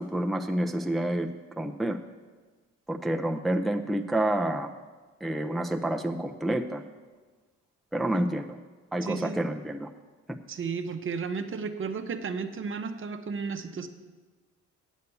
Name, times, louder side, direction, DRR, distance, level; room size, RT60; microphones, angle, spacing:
voice 1, 0.0-2.0 2.9-4.7 5.2-6.8 7.9-8.6 8.9-9.9, right 1 dB, ahead, 5 dB, 0.5 m, -28 dB
voice 2, 9.0-9.4 10.5-13.9, right 5 dB, 45° right, 8 dB, 0.8 m, -33 dB
8.3 x 8.2 x 6.9 m, 1.3 s
cardioid pair, 90°, 30 cm